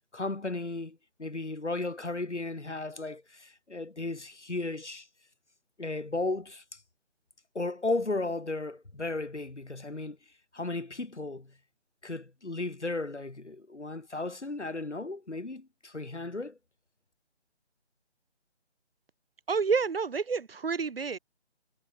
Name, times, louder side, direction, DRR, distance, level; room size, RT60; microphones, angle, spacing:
voice 1, 0.1-5.1 5.8-6.8 7.5-10.2 10.5-11.5 12.0-16.6, left 2 dB, 80° left, 2.2 m, -35 dB
voice 2, 19.5-21.2, right 5 dB, 55° right, 0.7 m, -29 dB
figure-of-eight pair, 155°, 35 cm